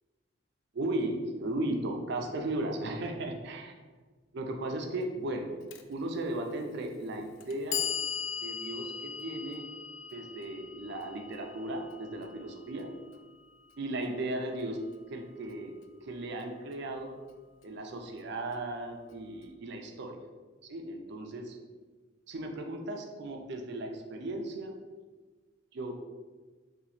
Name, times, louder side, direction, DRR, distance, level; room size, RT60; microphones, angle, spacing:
voice 1, 0.7-3.7 4.3-5.5 5.9-7.9 8.4-9.6 10.1-12.9 13.8-14.8 15.1-15.7 16.0-17.1 17.6-20.2 20.6-21.6 22.3-24.7 25.7-25.9, right 1 dB, 60° right, 3 dB, 0.4 m, -36 dB
Clock, 5.7-5.8 6.8-6.9 7.4-13.4, left 7 dB, 75° left, 0.3 m, -39 dB
2.9 x 2.4 x 4.0 m, 1.4 s
head